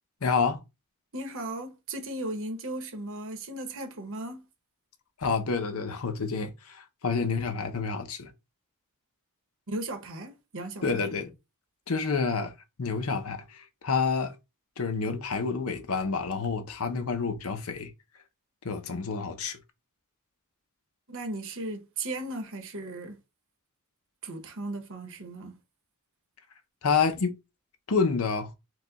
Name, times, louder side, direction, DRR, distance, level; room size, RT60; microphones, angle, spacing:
voice 1, 0.2-0.6 5.2-8.3 10.8-11.3 11.9-12.5 12.8-14.4 14.8-17.9 18.6-19.6 26.8-27.4 27.9-28.5, left 5 dB, 70° left, 0.8 m, -28 dB
voice 2, 1.1-4.4 9.7-11.1 21.1-23.2 24.2-25.6, right 2 dB, 65° right, 1.1 m, -36 dB
4.7 x 2.3 x 4.0 m
head